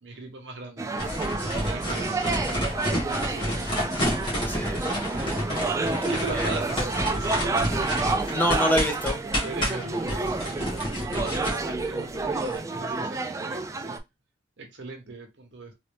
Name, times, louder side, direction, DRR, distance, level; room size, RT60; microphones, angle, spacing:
voice 1, 0.0-2.3 2.8-3.7 5.8-7.8 9.4-14.0 14.6-15.7, right 2 dB, 75° right, 2 dB, 1.0 m, -39 dB
sound 1, 0.8-14.0, right 3 dB, 15° right, 0.3 m, -30 dB
sound 2, 1.0-12.6, equal, 25° left, 1.4 m, -30 dB
voice 2, 4.5-6.0 6.3-6.5 8.3-9.2, equal, 10° left, 3 dB, 0.8 m, -28 dB
3.3 x 2.7 x 3.3 m, 0.22 s
head